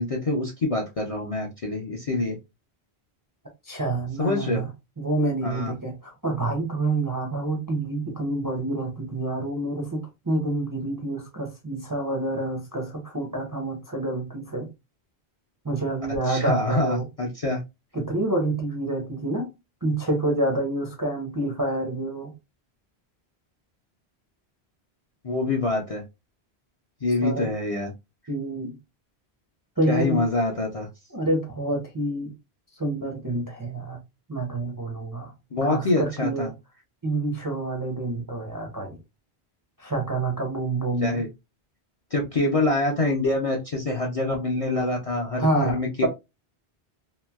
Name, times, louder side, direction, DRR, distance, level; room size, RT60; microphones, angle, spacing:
voice 1, 0.0-2.4 4.2-4.6 5.4-5.7 16.3-17.6 25.2-26.0 27.0-27.9 29.9-30.9 35.5-36.5 41.0-41.3 42.1-46.1, left 2 dB, 50° left, 0.4 m, -25 dB
voice 2, 3.6-4.7 5.0-14.7 15.6-17.1 17.9-19.5 19.8-22.3 27.2-27.5 28.3-28.8 29.8-30.2 31.1-32.3 32.7-34.0 34.3-35.3 35.6-36.5 37.0-39.0 39.8-41.2 45.4-46.1, right 2 dB, 30° right, 0.4 m, -27 dB
2.9 x 2.5 x 2.2 m
omnidirectional pair, 1.1 m